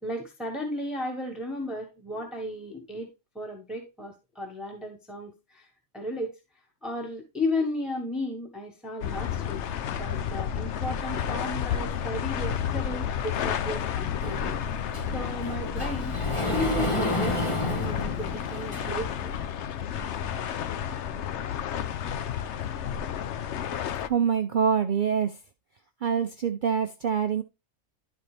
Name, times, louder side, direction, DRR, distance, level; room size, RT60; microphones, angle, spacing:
voice 1, 0.0-3.1 3.3-5.7 5.9-6.4 6.8-9.6 9.9-14.6 15.1-16.2 16.5-19.3, left 1 dB, ahead, 1 dB, 1.3 m, -34 dB
sound 1, 9.0-24.1, left 9 dB, 65° left, 0.9 m, -31 dB
Sliding door, 14.2-19.2, left 1 dB, 25° left, 1.1 m, -31 dB
voice 2, 24.1-25.4 26.0-27.4, right 7 dB, 55° right, 7 dB, 0.5 m, -25 dB
11.5 x 4.2 x 3.3 m, 0.25 s
omnidirectional pair, 1.4 m